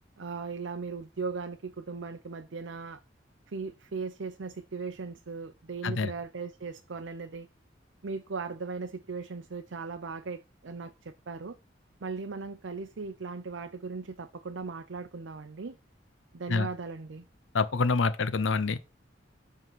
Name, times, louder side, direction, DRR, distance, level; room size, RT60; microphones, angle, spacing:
voice 1, 0.2-3.0 3.5-7.5 8.0-11.6 12.0-15.8 16.3-17.2, right 4 dB, 80° right, 0.6 m, -38 dB
voice 2, 17.5-18.8, left 4 dB, 85° left, 0.6 m, -26 dB
7.6 x 3.8 x 6.0 m
head